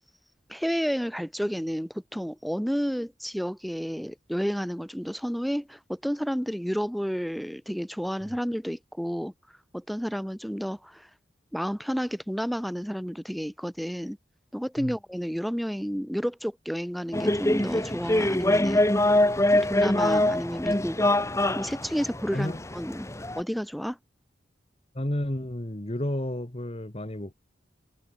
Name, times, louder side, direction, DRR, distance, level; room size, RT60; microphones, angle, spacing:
voice 1, 0.5-9.3 9.7-11.1 11.5-14.2 14.5-18.8 19.5-21.0 21.6-23.1 23.4-24.0, equal, ahead, 3.4 m, -31 dB
sound 1, 17.1-23.4, left 1 dB, 15° left, 1.5 m, -24 dB
voice 2, 24.9-27.3, left 1 dB, 35° left, 1.8 m, -31 dB
head